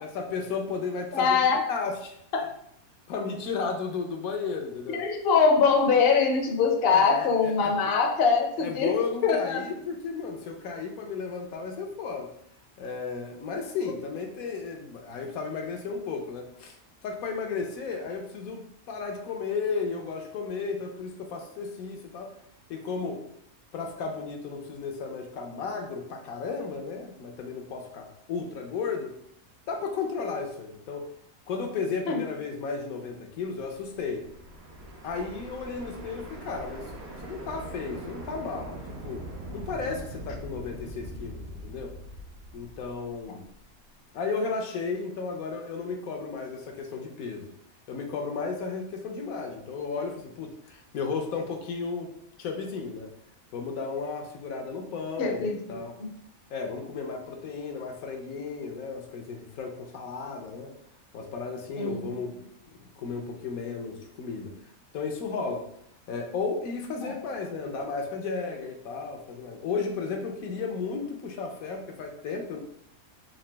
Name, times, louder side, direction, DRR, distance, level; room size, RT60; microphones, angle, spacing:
voice 1, 0.0-2.2 3.1-5.0 6.9-7.8 8.6-12.3 12.8-16.8 17.0-22.3 22.7-23.2 23.7-29.2 29.7-31.1 31.5-34.3 35.0-36.9 37.2-39.2 39.5-41.9 42.5-43.5 44.1-47.5 47.9-52.1 52.4-53.1 53.5-56.0 56.5-60.7 61.1-62.4 63.0-64.5 64.9-65.7 66.1-72.6, left 4 dB, 80° left, 3 dB, 1.1 m, -34 dB
voice 2, 1.1-1.6 2.3-2.5 4.9-9.0 9.2-9.6 32.1-32.2 55.2-56.1 61.8-62.2 67.0-67.1, left 5 dB, 55° left, 2 dB, 0.7 m, -23 dB
sound 1, 33.6-43.6, right 1 dB, 70° right, 1.4 m, -42 dB
3.9 x 2.6 x 3.3 m, 0.69 s
omnidirectional pair, 1.5 m